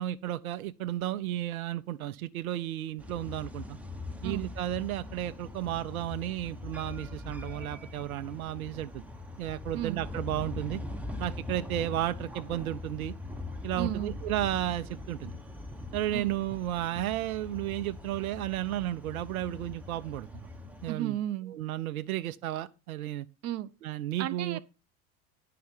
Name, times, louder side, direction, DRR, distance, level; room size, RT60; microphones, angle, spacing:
voice 1, 0.0-3.8 4.2-9.0 9.4-10.8 11.2-13.1 13.6-15.4 15.9-20.5 20.8-21.2 21.5-23.3 23.8-24.6, right 13 dB, 75° right, 0.6 m, -33 dB
sound 1, 3.0-20.9, left 2 dB, 5° right, 0.9 m, -41 dB
voice 2, 13.8-14.2 16.1-16.4 20.9-21.5 23.4-23.7 24.2-24.6, right 13 dB, 35° right, 0.8 m, -34 dB
9.4 x 5.7 x 5.3 m
hypercardioid pair, 75°, 43 cm